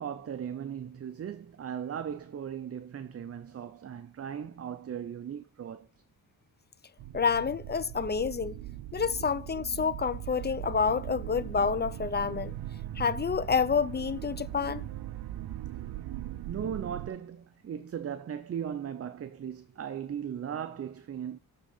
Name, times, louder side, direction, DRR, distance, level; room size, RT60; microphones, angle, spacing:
voice 1, 0.0-5.9 16.5-21.4, right 8 dB, 40° right, 0.5 m, -37 dB
sound 1, 7.0-17.1, right 14 dB, 85° right, 0.6 m, -40 dB
voice 2, 7.1-8.6 8.9-12.5 13.0-14.9, left 6 dB, 30° left, 0.4 m, -28 dB
7.4 x 3.6 x 5.0 m
cardioid pair, 85°, 38 cm